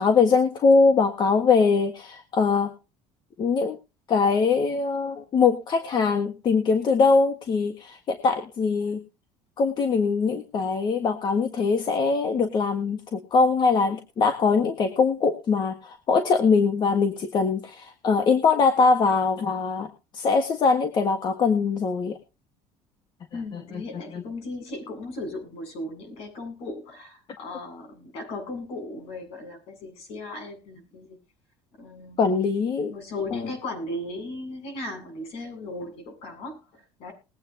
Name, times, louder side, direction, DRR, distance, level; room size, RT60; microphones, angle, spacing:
voice 1, 0.0-2.7 3.4-3.8 4.1-9.0 9.6-22.2 23.5-23.6 24.1-24.2 32.2-32.9 33.3-33.4, left 4 dB, 40° left, 5 dB, 1.6 m, -22 dB
voice 2, 23.3-31.2 31.8-32.3 32.9-37.1, left 2 dB, 65° left, 4 dB, 7.9 m, -37 dB
21.0 x 8.7 x 2.9 m, 0.30 s
cardioid pair, 125°, 11 cm